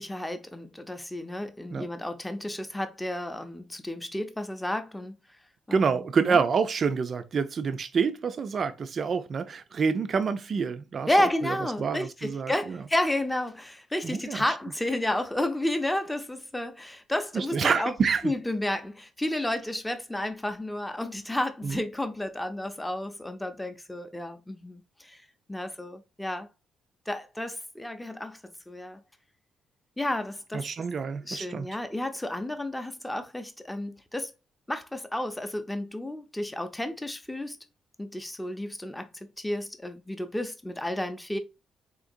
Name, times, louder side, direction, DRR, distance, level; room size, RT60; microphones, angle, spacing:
voice 1, 0.0-5.2 5.7-6.4 11.1-17.9 18.2-25.2 25.5-26.5 27.1-28.4 28.7-29.0 30.0-30.7 31.3-34.3 34.7-37.6 38.0-41.4, left 1 dB, 10° left, 0.6 m, -31 dB
voice 2, 5.7-12.8 14.0-14.4 17.3-18.3 21.6-21.8 30.5-31.7, right 5 dB, 50° right, 0.4 m, -27 dB
3.8 x 2.9 x 2.6 m
cardioid pair, 90°, 0 cm